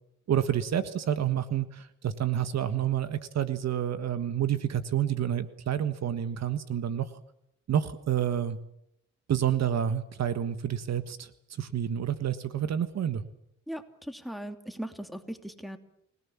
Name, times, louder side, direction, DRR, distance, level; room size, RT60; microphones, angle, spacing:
voice 1, 0.3-7.1 7.7-8.6 9.3-11.3 11.6-13.2, right 10 dB, 60° right, 11 dB, 1.5 m, -29 dB
voice 2, 13.7-15.8, equal, ahead, 7 dB, 2.8 m, -38 dB
29.5 x 18.5 x 7.3 m, 0.77 s
cardioid pair, 90°, 30 cm